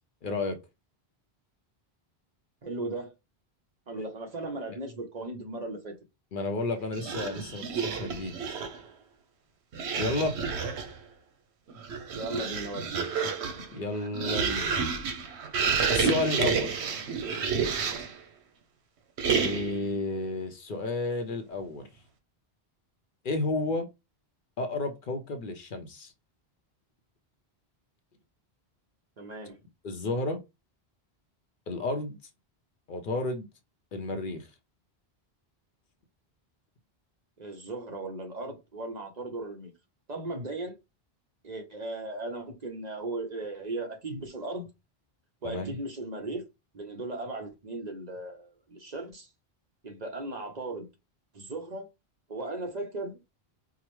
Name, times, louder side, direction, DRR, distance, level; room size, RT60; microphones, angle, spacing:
voice 1, 0.2-0.6 6.3-8.4 10.0-10.4 13.7-14.8 15.9-16.9 19.3-21.9 23.2-23.9 24.6-26.1 29.8-30.4 31.7-32.2 32.9-33.5 33.9-34.5 45.4-45.7, left 2 dB, 60° left, 0.7 m, -31 dB
voice 2, 2.6-3.1 3.9-5.9 12.2-12.9 29.2-29.6 37.4-39.7 40.1-40.7 41.4-44.7 45.4-46.4 46.7-49.3 49.8-50.9 51.3-51.9 52.3-53.3, right 2 dB, 45° right, 0.8 m, -37 dB
sound 1, 6.9-8.9 9.7-11.0 11.7-18.2 19.2-19.9, right 5 dB, 85° right, 1.0 m, -30 dB
4.8 x 2.0 x 3.0 m
omnidirectional pair, 1.1 m